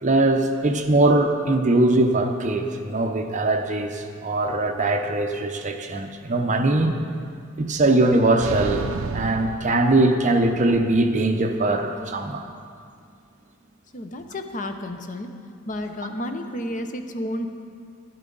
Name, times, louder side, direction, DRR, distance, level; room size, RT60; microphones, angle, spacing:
voice 1, 0.0-7.0 7.6-12.5, right 2 dB, 35° right, 4 dB, 0.7 m, -21 dB
sound 1, 8.4-10.6, right 5 dB, 75° right, 0.4 m, -32 dB
voice 2, 13.9-15.3 15.7-17.5, left 1 dB, 40° left, 6 dB, 0.7 m, -31 dB
12.0 x 11.0 x 4.0 m, 2.2 s
head